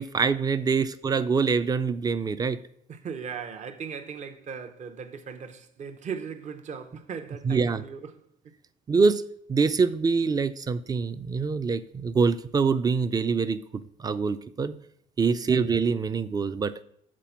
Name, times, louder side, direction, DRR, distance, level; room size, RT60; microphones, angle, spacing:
voice 1, 0.0-2.6 7.4-7.8 8.9-9.2 9.5-13.6 14.0-14.7 15.2-16.8, right 5 dB, 20° right, 0.5 m, -25 dB
voice 2, 2.9-8.5 15.2-15.5, right 6 dB, 45° right, 0.8 m, -38 dB
7.5 x 4.2 x 6.8 m
cardioid pair, 110°, 17 cm